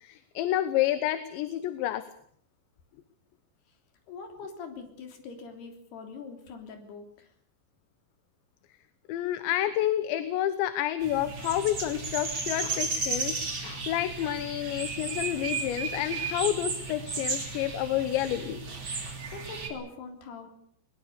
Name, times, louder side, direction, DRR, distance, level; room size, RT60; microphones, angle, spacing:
voice 1, 0.0-2.0 9.1-18.6, left 12 dB, 75° left, 11 dB, 3.2 m, -29 dB
voice 2, 4.1-7.3 19.3-20.5, left 4 dB, 60° left, 4 dB, 5.2 m, -43 dB
sound 1, 11.0-19.7, right 4 dB, 30° right, 3.3 m, -34 dB
21.5 x 21.0 x 6.9 m, 0.63 s
omnidirectional pair, 5.5 m